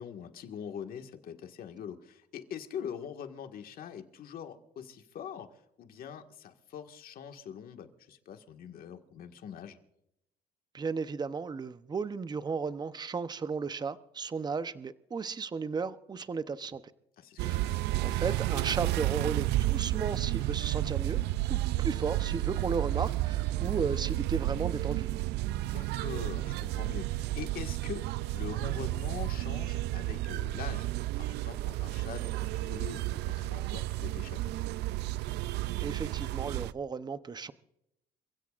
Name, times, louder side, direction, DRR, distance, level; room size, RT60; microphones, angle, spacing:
voice 1, 0.0-9.8 17.2-17.8 25.6-28.1 28.3-34.5, left 8 dB, 60° left, 1.8 m, -43 dB
voice 2, 10.7-16.8 17.4-17.7 18.0-21.2 21.5-25.1 35.8-37.5, right 5 dB, 25° right, 0.8 m, -35 dB
sound 1, 17.4-36.7, right 16 dB, 80° right, 0.5 m, -32 dB
28.5 x 16.0 x 2.5 m
cardioid pair, 110°, 17 cm